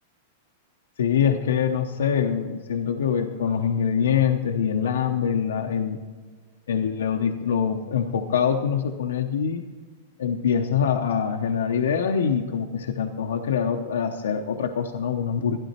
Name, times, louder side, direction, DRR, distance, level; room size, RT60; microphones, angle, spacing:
voice 1, 1.0-6.0 6.7-9.6 10.2-15.6, left 7 dB, 90° left, 5 dB, 0.8 m, -24 dB
12.5 x 11.0 x 4.3 m, 1.5 s
hypercardioid pair, 140°, 0 cm